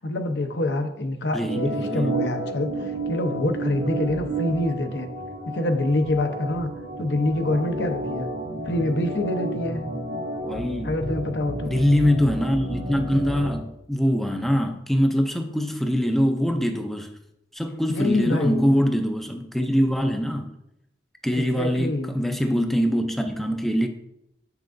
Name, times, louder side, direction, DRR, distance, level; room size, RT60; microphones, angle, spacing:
voice 1, 0.0-5.1 5.5-6.7 7.0-8.3 8.7-9.8 10.8-11.8 17.9-18.8 21.3-22.1, left 2 dB, 80° left, 0.7 m, -26 dB
voice 2, 1.3-2.2 10.5-10.9 11.6-17.1 17.5-20.5 21.2-23.9, equal, ahead, 0.4 m, -23 dB
Organ, 1.4-13.6, right 1 dB, 75° right, 1.4 m, -31 dB
7.4 x 5.8 x 2.5 m
head